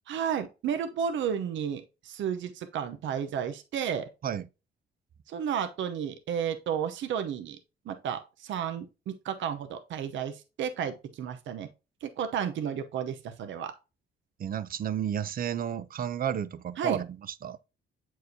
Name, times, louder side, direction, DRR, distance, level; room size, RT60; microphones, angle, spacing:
voice 1, 0.1-4.1 5.3-7.6 7.9-11.7 12.0-13.7 16.8-17.0, right 8 dB, 75° right, 0.8 m, -32 dB
voice 2, 14.4-17.6, right 9 dB, 45° right, 0.6 m, -32 dB
7.8 x 4.7 x 2.7 m
cardioid pair, 90°, 20 cm